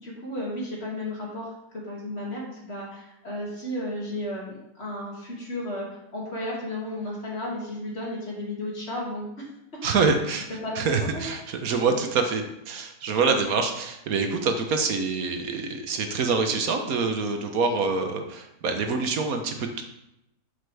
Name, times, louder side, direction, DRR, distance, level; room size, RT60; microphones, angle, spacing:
voice 1, 0.0-5.9 6.1-9.3 9.9-10.0 10.5-11.2, left 1 dB, 45° left, -4 dB, 2.6 m, -33 dB
voice 2, 9.8-10.5 10.8-19.8, right 4 dB, 70° right, 5 dB, 1.4 m, -26 dB
7.7 x 7.2 x 3.4 m, 0.85 s
omnidirectional pair, 1.6 m